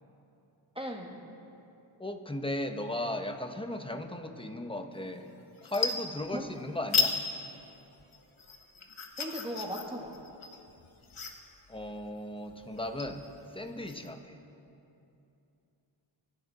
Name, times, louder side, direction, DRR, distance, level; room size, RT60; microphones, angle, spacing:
voice 1, 0.8-1.2 6.3-6.5 9.2-10.1, equal, 10° right, 0 dB, 1.8 m, -37 dB
voice 2, 2.0-5.3 5.6-7.2 11.7-14.4, left 1 dB, 10° left, 6 dB, 1.1 m, -36 dB
sound 1, 5.0-5.3 5.6-6.6 6.9-7.2 7.5-14.1, left 5 dB, 75° left, 1.4 m, -34 dB
25.5 x 11.0 x 4.3 m, 2.8 s
wide cardioid pair, 70°, 48 cm